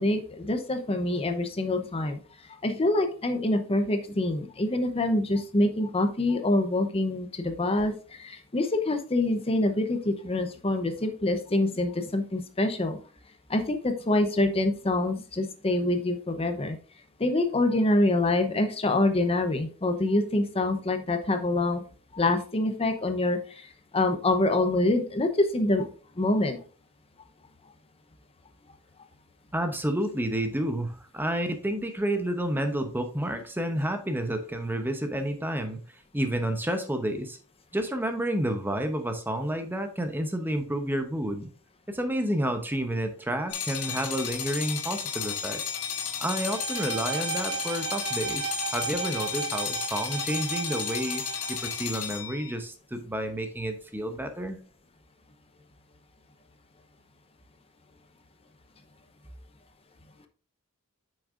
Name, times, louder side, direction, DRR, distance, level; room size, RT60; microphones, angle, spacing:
voice 1, 0.0-2.2 2.6-13.0 13.5-16.8 17.2-21.8 22.1-23.7 23.9-25.9 26.2-26.6, left 2 dB, 25° left, 7 dB, 0.7 m, -26 dB
voice 2, 29.5-37.4 37.7-41.5 41.9-45.6 46.2-54.6, right 1 dB, 10° right, 6 dB, 0.8 m, -30 dB
sound 1, 43.5-52.5, left 7 dB, 90° left, 1.7 m, -33 dB
Bowed string instrument, 46.3-51.7, right 7 dB, 65° right, 1.3 m, -35 dB
8.5 x 6.4 x 2.5 m, 0.39 s
head